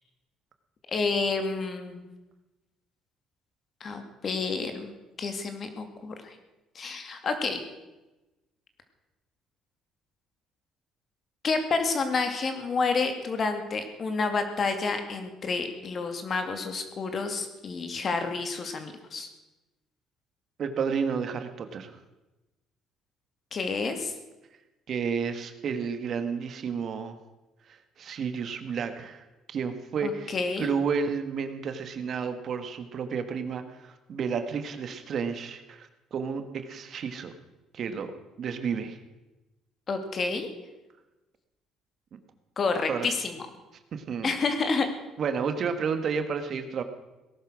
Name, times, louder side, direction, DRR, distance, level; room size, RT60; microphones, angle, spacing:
voice 1, 0.9-2.1 3.8-6.4 6.7-7.6 11.4-19.3 23.5-24.1 30.0-30.7 39.9-40.5 42.6-43.4 44.2-44.9, left 4 dB, 40° left, 7 dB, 2.4 m, -29 dB
voice 2, 20.6-21.9 24.9-27.2 27.7-30.3 30.6-37.3 37.7-38.1 38.4-39.0 42.9-43.1 43.9-44.4 45.2-46.8, right 6 dB, 50° right, 8 dB, 1.6 m, -31 dB
18.0 x 11.5 x 6.3 m, 1.1 s
cardioid pair, 110°, 0 cm